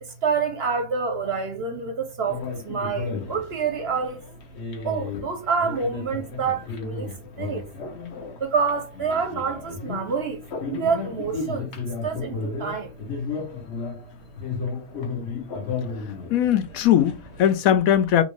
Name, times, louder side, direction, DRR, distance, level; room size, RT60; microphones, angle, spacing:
voice 1, 0.0-4.2 4.8-7.1 7.4-7.7 8.4-11.7 12.0-12.9, right 5 dB, 55° right, 0.8 m, -27 dB
sound 1, 2.2-17.5, left 4 dB, 55° left, 1.1 m, -34 dB
voice 2, 16.3-18.2, left 10 dB, 75° left, 1.0 m, -19 dB
3.6 x 2.6 x 3.0 m
omnidirectional pair, 1.5 m